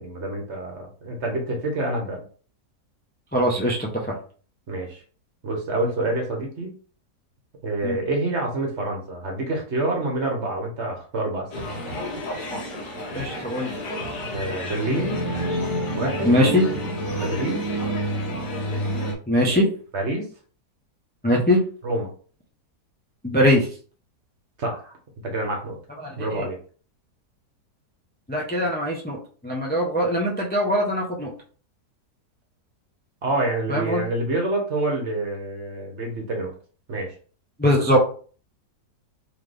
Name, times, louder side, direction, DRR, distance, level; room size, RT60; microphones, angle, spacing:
voice 1, 0.0-2.2 4.7-5.0 5.4-6.7 7.6-11.6 14.3-15.2 16.0-16.3 17.2-17.6 19.3-19.6 19.9-20.3 21.8-22.1 24.6-25.0 25.2-25.8 26.2-26.6 33.2-36.5 36.9-37.1, right 2 dB, 50° right, 1 dB, 1.1 m, -27 dB
voice 2, 3.3-4.2 7.8-8.0 13.1-13.8 16.0-16.7 19.3-19.7 21.2-21.6 23.2-23.7 26.0-26.5 28.3-31.3 33.7-34.1 37.6-38.0, equal, 15° left, -2 dB, 0.4 m, -22 dB
sound 1, 11.5-19.1, equal, 65° left, 1.6 m, -29 dB
3.9 x 3.2 x 3.3 m, 0.42 s
omnidirectional pair, 1.8 m